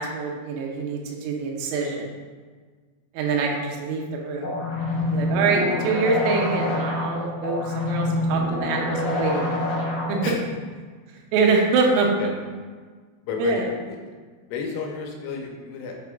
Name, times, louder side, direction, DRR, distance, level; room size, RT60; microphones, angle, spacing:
voice 1, 0.0-2.1 3.1-4.5 4.9-9.6 10.1-10.2 11.3-12.1 13.4-13.7, right 4 dB, 85° right, 0 dB, 3.4 m, -25 dB
sound 1, 4.4-10.4, left 1 dB, 70° left, 2.1 m, -26 dB
voice 2, 12.0-12.3 13.2-14.1 14.5-16.1, left 5 dB, 85° left, 1 dB, 3.3 m, -32 dB
8.1 x 3.7 x 3.6 m, 1.5 s
omnidirectional pair, 6.0 m